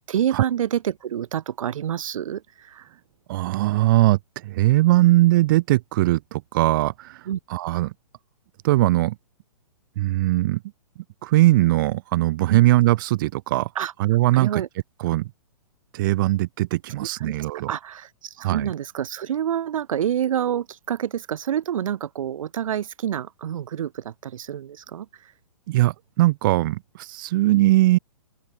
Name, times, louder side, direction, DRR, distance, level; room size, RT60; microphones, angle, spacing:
voice 1, 0.1-3.0 7.3-7.4 12.5-12.6 13.7-13.9 14.3-14.7 17.0-25.3, right 10 dB, 60° right, 2.6 m, -28 dB
voice 2, 3.3-7.2 7.5-7.9 8.6-9.2 10.0-10.6 11.2-13.7 14.0-14.6 15.0-15.3 15.9-17.7 18.4-18.7 25.7-28.0, right 17 dB, 35° right, 1.1 m, -20 dB
open air
hypercardioid pair, 165°, 19 cm